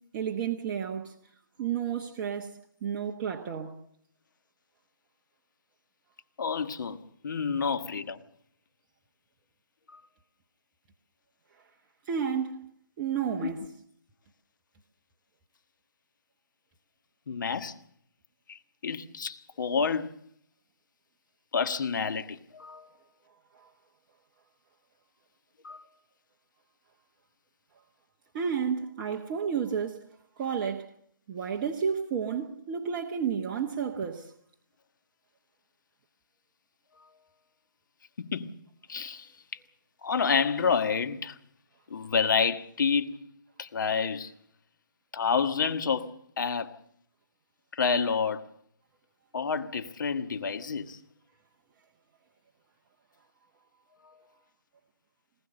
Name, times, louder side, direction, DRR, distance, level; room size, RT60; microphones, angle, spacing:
voice 1, 0.1-1.1 1.6-3.8 12.1-12.6 13.0-13.6 23.5-23.7 28.3-30.0 30.4-30.9 31.3-34.3, right 7 dB, 25° right, 1.2 m, -31 dB
voice 2, 6.4-7.0 7.2-8.2 9.9-10.0 13.4-13.5 17.3-17.7 18.5-20.1 21.5-22.9 25.6-25.8 38.2-38.5 38.9-39.3 40.0-41.4 41.9-43.2 43.6-44.3 45.1-46.1 46.4-46.8 47.7-48.4 49.3-51.0 54.0-54.1, left 6 dB, 60° left, 1.5 m, -29 dB
20.5 x 19.5 x 6.7 m
figure-of-eight pair, 150°, 12 cm